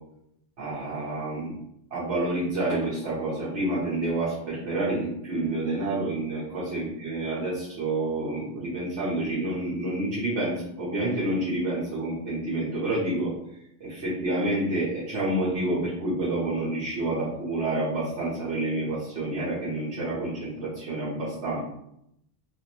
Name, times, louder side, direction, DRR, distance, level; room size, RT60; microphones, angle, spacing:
voice 1, 0.6-1.5 1.9-13.3 13.8-21.6, right 2 dB, 85° right, -10 dB, 1.4 m, -28 dB
3.5 x 2.5 x 2.9 m, 0.78 s
omnidirectional pair, 1.2 m